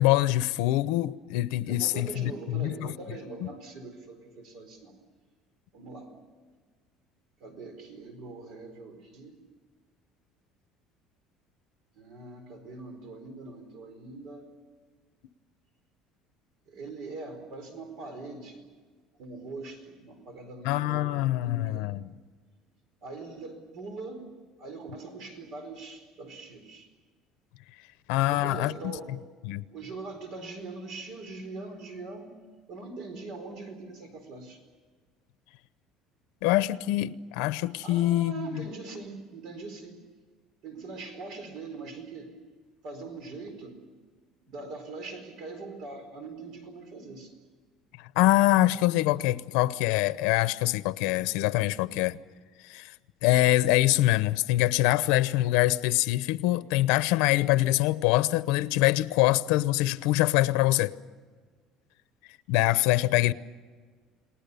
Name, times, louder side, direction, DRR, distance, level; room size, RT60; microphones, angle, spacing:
voice 1, 0.0-2.9 3.4-3.5 20.6-22.1 28.1-28.9 29.4-29.7 36.4-38.7 48.0-52.2 52.6-52.9 53.2-60.9 62.5-63.3, left 16 dB, 90° left, 0.8 m, -24 dB
voice 2, 1.6-4.9 5.7-6.1 7.4-9.4 11.9-14.5 16.7-18.6 19.2-21.9 23.0-24.3 24.6-26.9 28.2-29.1 29.7-32.3 32.7-34.6 37.8-40.0 40.6-42.4 42.8-43.8 44.4-47.3, right 3 dB, 50° right, 4.5 m, -42 dB
30.0 x 19.5 x 6.9 m
cardioid pair, 175°, 0 cm